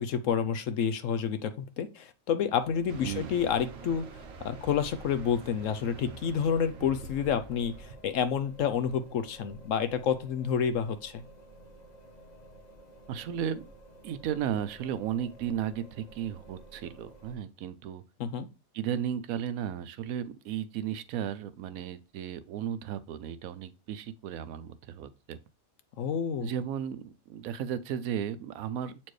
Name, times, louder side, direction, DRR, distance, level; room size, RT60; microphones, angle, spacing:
voice 1, 0.0-4.0 4.4-11.2 18.2-18.5 26.0-26.5, left 7 dB, 70° left, 0.9 m, -29 dB
sound 1, 2.6-17.4, right 1 dB, 35° left, 0.9 m, -52 dB
sound 2, 2.9-7.9, right 4 dB, 50° right, 0.9 m, -46 dB
voice 2, 3.0-3.4 13.1-13.7 14.0-18.0 18.7-25.4 26.4-29.1, right 9 dB, 75° right, 1.0 m, -34 dB
8.0 x 4.3 x 3.2 m
omnidirectional pair, 1.5 m